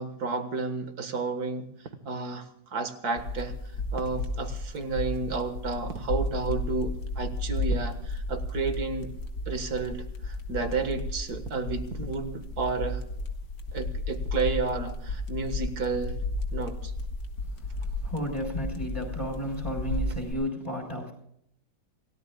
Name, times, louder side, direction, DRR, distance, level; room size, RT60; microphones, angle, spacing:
voice 1, 0.0-1.6 2.1-3.6 3.9-9.1 9.5-13.0 13.7-16.2 16.5-16.9, right 4 dB, 60° right, 8 dB, 2.0 m, -31 dB
sound 1, 3.2-20.3, left 2 dB, 75° left, 2.4 m, -33 dB
voice 2, 17.8-21.1, equal, 20° left, 0 dB, 4.3 m, -33 dB
28.5 x 17.5 x 2.3 m, 0.74 s
omnidirectional pair, 1.9 m